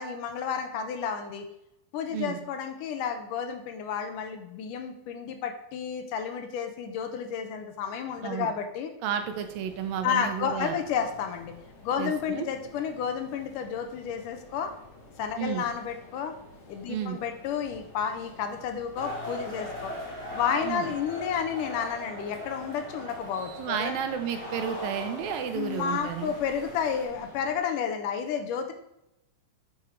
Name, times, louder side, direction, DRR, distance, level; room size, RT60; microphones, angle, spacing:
voice 1, 0.0-1.4 1.9-8.9 10.0-11.5 11.8-14.7 15.2-16.4 16.7-19.9 20.3-24.0 25.5-28.7, left 7 dB, 75° left, 6 dB, 2.3 m, -31 dB
voice 2, 9.0-10.8 12.0-12.5 15.4-15.6 16.9-17.2 20.6-20.9 23.6-26.3, right 8 dB, 80° right, 8 dB, 2.7 m, -32 dB
sound 1, 9.2-27.6, left 2 dB, 35° left, 1.4 m, -50 dB
sound 2, 18.9-27.0, left 1 dB, 15° right, 3.4 m, -40 dB
8.8 x 7.3 x 4.6 m, 0.84 s
omnidirectional pair, 4.1 m